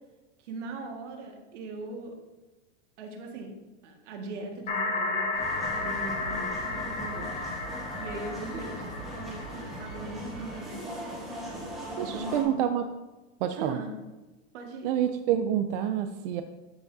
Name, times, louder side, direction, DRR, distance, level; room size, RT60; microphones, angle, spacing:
voice 1, 0.4-2.2 3.0-3.5 3.8-7.3 8.0-10.8 11.8-12.6 13.6-13.9 14.5-14.9, right 3 dB, 75° right, 2 dB, 1.8 m, -40 dB
sound 1, 4.7-10.4, left 3 dB, 20° left, 0.8 m, -33 dB
sound 2, 5.3-12.4, right 1 dB, ahead, 1.5 m, -39 dB
voice 2, 12.0-12.8 13.4-13.8 14.8-16.4, right 10 dB, 50° right, 7 dB, 0.5 m, -27 dB
12.5 x 4.9 x 2.7 m, 1.1 s
supercardioid pair, 165°, 35 cm